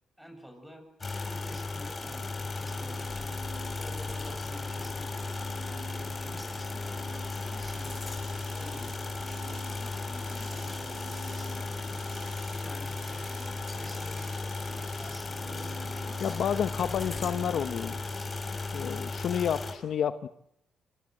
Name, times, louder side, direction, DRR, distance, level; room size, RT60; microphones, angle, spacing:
voice 1, 0.2-0.8 1.3-3.3 3.8-5.1 5.6-8.1 8.5-12.0 12.6-18.3, equal, 5° right, 7 dB, 7.7 m, -49 dB
sound 1, 1.0-19.7, left 3 dB, 30° left, 6.6 m, -35 dB
sound 2, 1.7-18.0, right 6 dB, 55° right, 5.6 m, -52 dB
sound 3, 7.3-15.2, right 9 dB, 75° right, 3.9 m, -55 dB
voice 2, 16.2-18.0 18.7-20.3, left 8 dB, 65° left, 10 dB, 1.1 m, -30 dB
26.5 x 24.5 x 7.9 m, 0.79 s
cardioid pair, 95°, 0 cm